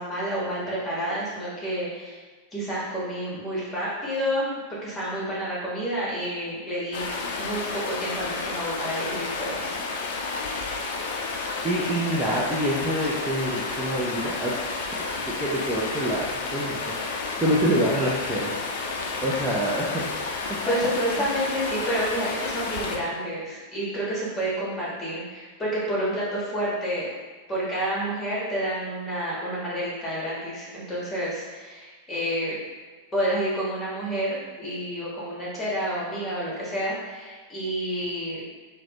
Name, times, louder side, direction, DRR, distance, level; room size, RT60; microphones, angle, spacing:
voice 1, 0.0-2.2 2.5-4.5 4.8-7.0 7.4-9.7 10.1-10.5 20.7-27.1 27.5-32.6 33.1-38.4, equal, 15° left, -7 dB, 1.4 m, -29 dB
Stream, 6.9-23.0, left 3 dB, 55° left, 0.4 m, -31 dB
voice 2, 11.6-14.6 15.2-16.9 17.4-18.5 19.2-20.0 21.2-21.3, equal, 10° right, -8 dB, 0.6 m, -26 dB
4.0 x 2.2 x 2.9 m, 1.4 s
figure-of-eight pair, 90°, 0 cm